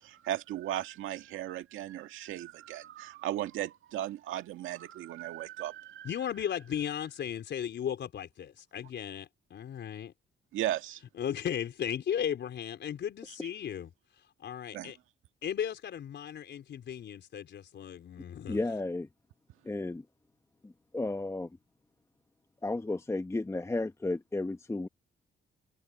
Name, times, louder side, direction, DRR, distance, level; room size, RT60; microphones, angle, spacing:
voice 1, 0.0-6.1 10.5-11.0 14.7-14.9, right 13 dB, 85° right, 1.9 m, -36 dB
voice 2, 6.0-10.1 11.2-13.9 14.4-15.0 15.4-18.6, left 9 dB, 65° left, 4.4 m, -36 dB
voice 3, 18.5-19.1 19.6-20.0 20.6-21.5 22.6-24.9, left 2 dB, 15° left, 1.0 m, -33 dB
open air
cardioid pair, 90°, 20 cm